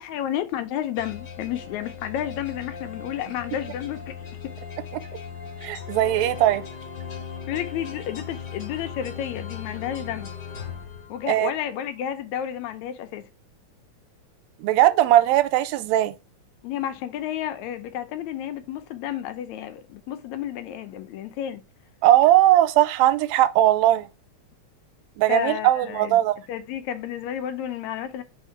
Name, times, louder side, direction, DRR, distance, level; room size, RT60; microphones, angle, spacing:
voice 1, 0.0-4.5 7.5-10.3 11.1-13.3 16.6-21.6 25.3-26.2 26.5-28.2, left 10 dB, 80° left, 1.9 m, -31 dB
sound 1, 1.0-11.6, left 7 dB, 45° left, 1.9 m, -38 dB
voice 2, 5.6-6.6 11.3-11.5 14.6-16.1 22.0-24.1 25.2-26.3, right 13 dB, 80° right, 1.7 m, -19 dB
4.8 x 3.5 x 5.6 m
omnidirectional pair, 3.4 m